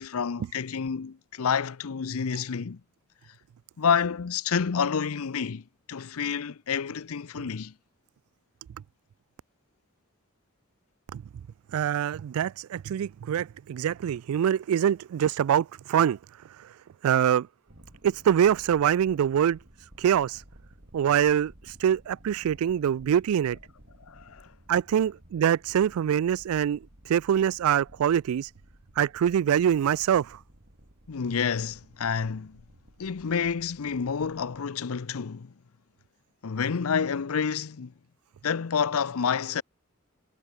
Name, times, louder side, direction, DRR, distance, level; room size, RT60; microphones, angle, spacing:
voice 1, 0.0-2.8 3.8-7.7 24.1-24.5 31.1-32.6 33.0-35.5 36.4-37.9 38.4-39.6, left 6 dB, 80° left, 0.6 m, -29 dB
voice 2, 11.7-16.2 17.0-17.5 18.0-19.6 20.0-20.4 20.9-21.5 21.8-23.6 24.7-26.8 27.1-28.5 29.0-30.3, right 9 dB, 80° right, 0.3 m, -24 dB
sound 1, 17.7-34.6, right 1 dB, 55° right, 3.5 m, -54 dB
head